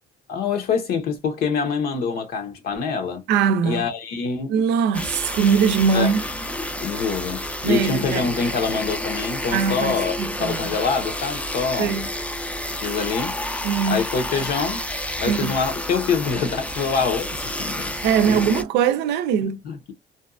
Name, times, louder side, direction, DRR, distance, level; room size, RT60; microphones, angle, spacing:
voice 1, 0.3-3.2 3.6-4.5 5.9-6.1 6.8-12.0 12.8-13.3 13.9-14.8 15.2-17.9 18.3-18.5 19.6-19.9, left 5 dB, 65° left, 0.9 m, -25 dB
voice 2, 3.3-3.8 4.5-6.2 7.6-8.3 9.5-10.6 11.8-12.1 13.6-14.0 15.2-15.6 18.0-19.6, right 7 dB, 85° right, 0.5 m, -21 dB
sound 1, 4.9-18.6, left 1 dB, 10° left, 0.4 m, -30 dB
2.6 x 2.3 x 2.4 m
cardioid pair, 110°, 17 cm